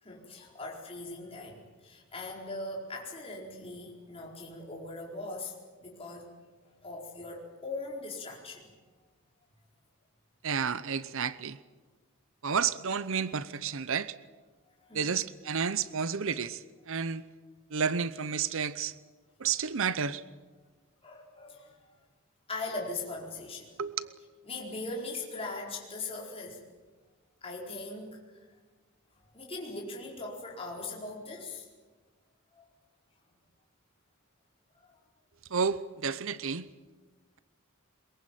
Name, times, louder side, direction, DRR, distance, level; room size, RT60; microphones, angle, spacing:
voice 1, 0.0-6.3 6.8-8.7 14.8-15.2 21.0-21.8 22.5-23.8 24.5-26.6 27.4-28.4 29.3-31.7 32.5-32.6, left 2 dB, 25° left, 4.6 m, -40 dB
voice 2, 10.4-11.6 12.4-14.1 14.9-17.2 17.7-18.9 19.4-20.2 23.8-24.1 35.5-36.7, right 6 dB, 65° right, 0.7 m, -31 dB
22.5 x 22.0 x 9.2 m
head